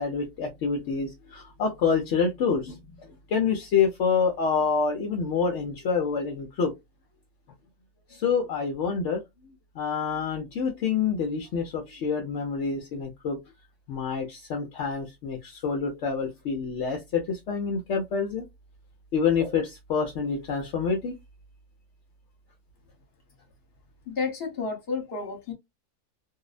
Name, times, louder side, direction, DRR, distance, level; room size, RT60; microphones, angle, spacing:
voice 1, 0.0-6.7 8.1-13.4 13.9-18.5 19.1-21.2, left 5 dB, 65° left, 0.8 m, -27 dB
voice 2, 24.0-25.5, left 4 dB, 45° left, 1.1 m, -31 dB
2.7 x 2.0 x 2.3 m
omnidirectional pair, 1.6 m